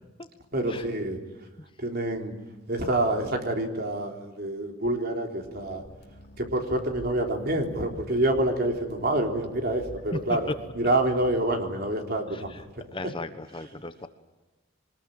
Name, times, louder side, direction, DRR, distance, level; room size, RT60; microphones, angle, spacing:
voice 1, 0.5-1.2 1.8-2.3 2.7-5.8 6.4-12.6, right 1 dB, 50° right, 3 dB, 3.6 m, -27 dB
sound 1, 5.4-11.2, left 1 dB, 50° left, 3.1 m, -47 dB
voice 2, 10.1-10.5 12.3-12.6 12.9-14.1, left 2 dB, 25° left, 10 dB, 1.1 m, -36 dB
24.0 x 20.0 x 9.2 m, 1.2 s
head